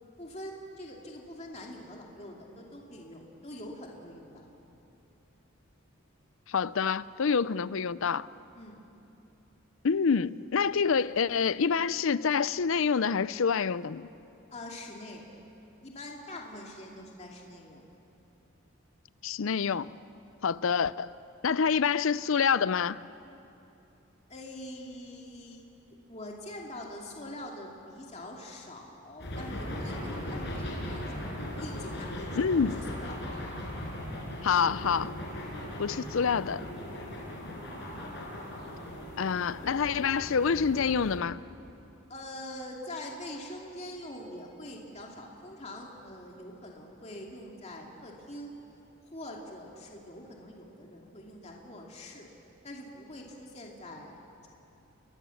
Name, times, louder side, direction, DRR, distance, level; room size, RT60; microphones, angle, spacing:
voice 1, 0.0-4.5 8.5-8.8 14.5-15.2 15.8-17.8 24.3-25.6 26.1-33.4 42.1-48.5 49.1-52.3 52.6-54.5, left 1 dB, 30° left, 2.5 m, -44 dB
voice 2, 6.5-8.3 9.8-14.1 19.2-19.9 20.4-21.1 21.4-23.0 32.4-32.8 34.4-35.1 35.8-36.6 39.2-41.4, left 6 dB, 70° left, 0.5 m, -27 dB
sound 1, 29.2-41.2, left 1 dB, 55° left, 5.5 m, -38 dB
sound 2, 35.4-41.4, right 1 dB, 35° right, 1.6 m, -54 dB
29.5 x 22.0 x 7.1 m
head